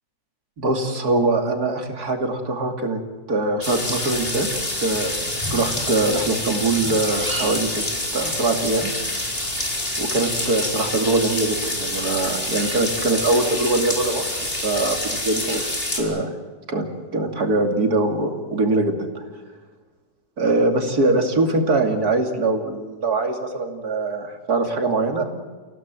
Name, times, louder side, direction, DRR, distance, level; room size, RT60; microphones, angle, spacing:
voice 1, 0.6-3.0 3.3-4.5 4.8-5.2 5.5-7.8 8.1-8.9 10.0-15.6 15.9-16.4 16.7-16.9 17.1-19.3 20.4-25.2, right 2 dB, 65° right, 4 dB, 3.2 m, -22 dB
sound 1, 3.6-16.0, left 1 dB, 35° left, 4.4 m, -27 dB
sound 2, 3.9-15.1, left 1 dB, 5° right, 7.3 m, -40 dB
29.0 x 17.0 x 7.8 m, 1.4 s
omnidirectional pair, 1.8 m